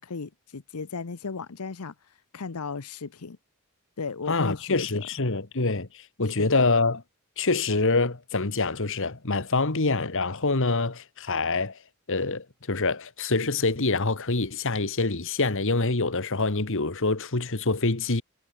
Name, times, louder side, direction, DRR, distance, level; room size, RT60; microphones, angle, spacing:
voice 1, 0.0-3.4 4.0-5.1 6.2-6.6, left 4 dB, 90° left, 0.8 m, -36 dB
voice 2, 4.3-7.0 7.4-11.8 12.1-18.2, left 3 dB, 60° left, 1.8 m, -25 dB
head